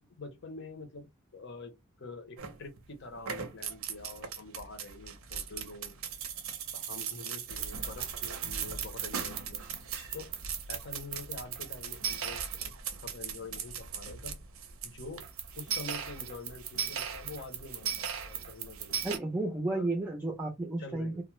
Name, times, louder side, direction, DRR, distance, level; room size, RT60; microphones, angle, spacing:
voice 1, 0.0-5.9 6.7-9.6 10.1-10.3 10.7-12.7 13.0-14.4 14.8-15.3 15.6-19.0 19.7-19.9 20.8-21.2, left 3 dB, 60° left, 0.8 m, -46 dB
sound 1, 2.4-2.8 3.2-19.2, right 7 dB, 85° right, 0.6 m, -38 dB
voice 2, 19.0-21.2, right 2 dB, 10° right, 0.4 m, -32 dB
2.3 x 2.0 x 3.0 m
head